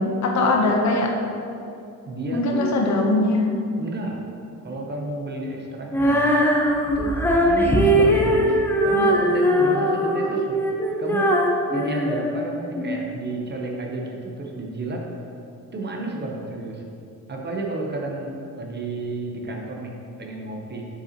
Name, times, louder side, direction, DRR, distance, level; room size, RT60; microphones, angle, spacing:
voice 1, 0.2-1.1 2.3-3.5 10.2-10.3, left 2 dB, 50° left, 0 dB, 0.9 m, -21 dB
voice 2, 2.1-2.8 3.8-4.2 4.6-6.3 7.0-10.6 11.0-11.4 11.7-15.1 15.7-16.8 17.3-20.8, right 2 dB, 30° right, 0 dB, 0.8 m, -31 dB
Female singing, 5.9-13.0, equal, 5° left, 0.5 m, -20 dB
8.0 x 5.5 x 2.9 m, 2.6 s
cardioid pair, 155°, 35 cm